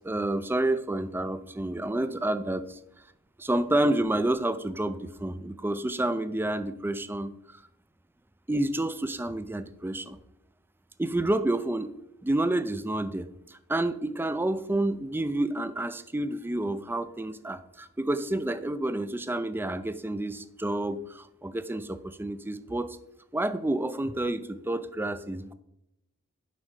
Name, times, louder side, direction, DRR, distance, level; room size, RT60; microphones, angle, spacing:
voice 1, 0.0-2.8 3.4-7.3 8.5-10.2 11.0-11.9 12.2-23.0 23.3-25.5, right 1 dB, 10° right, 13 dB, 0.4 m, -29 dB
7.3 x 5.3 x 4.7 m, 0.83 s
head